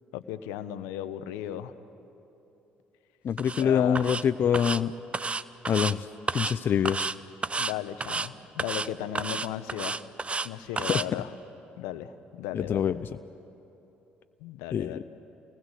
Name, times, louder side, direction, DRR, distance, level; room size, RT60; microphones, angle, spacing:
voice 1, 0.1-1.7 3.6-4.1 7.6-10.0 10.4-11.3 11.8-13.0 14.4-15.1, left 11 dB, 80° left, 12 dB, 0.9 m, -35 dB
voice 2, 3.2-4.9 5.7-6.1 6.3-7.1 10.9-11.0 12.5-13.1 14.7-15.0, left 8 dB, 50° left, 11 dB, 0.6 m, -25 dB
sound 1, 3.4-3.6 3.9-4.2 4.5-4.8 5.1-5.9 6.3-6.5 6.8-7.1 7.4-7.7 8.0-8.3 8.6-8.9 9.1-10.5 10.8-11.0, right 4 dB, 25° right, 0.7 m, -31 dB
28.0 x 19.5 x 8.2 m, 3.0 s
hypercardioid pair, 55°, 5 cm